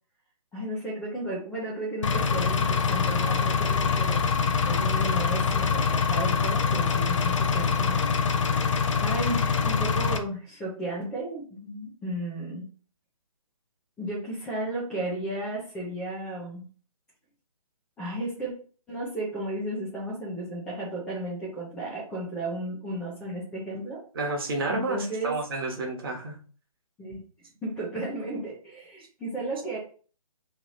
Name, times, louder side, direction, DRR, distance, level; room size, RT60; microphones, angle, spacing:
voice 1, 0.5-4.2 4.6-8.1 9.0-12.6 14.0-16.7 18.0-18.5 18.9-24.0 24.7-25.4 27.0-27.2 27.6-29.8, right 1 dB, 5° left, -5 dB, 0.5 m, -34 dB
Engine, 2.0-10.2, left 5 dB, 55° left, 0.6 m, -24 dB
voice 2, 24.1-26.4, right 3 dB, 40° right, 1 dB, 1.1 m, -30 dB
3.1 x 2.8 x 3.9 m, 0.39 s
figure-of-eight pair, 150°, 19 cm